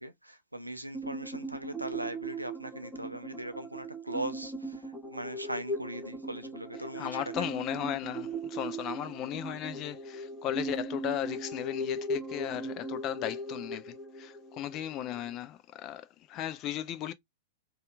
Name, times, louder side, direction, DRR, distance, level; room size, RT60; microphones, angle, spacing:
voice 1, 0.0-7.6, right 1 dB, 90° right, 0.5 m, -40 dB
sound 1, 0.9-15.4, right 2 dB, 10° left, 1.0 m, -39 dB
voice 2, 7.0-17.1, left 12 dB, 35° left, 0.4 m, -36 dB
2.8 x 2.4 x 3.2 m
figure-of-eight pair, 100°, 0 cm